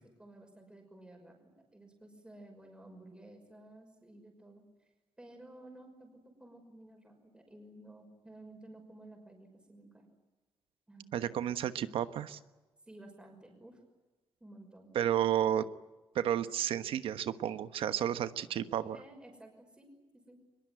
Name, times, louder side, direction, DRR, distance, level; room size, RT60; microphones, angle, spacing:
voice 1, 0.2-4.9 5.2-6.1 6.4-10.1 10.9-11.1 12.9-13.8 14.4-14.9 18.9-19.9 20.1-20.4, right 1 dB, 10° right, 3 dB, 5.8 m, -54 dB
voice 2, 11.1-12.4 14.9-15.6 16.1-19.0, right 10 dB, 85° right, 12 dB, 1.2 m, -32 dB
23.0 x 22.0 x 9.3 m, 1.2 s
cardioid pair, 125°, 9 cm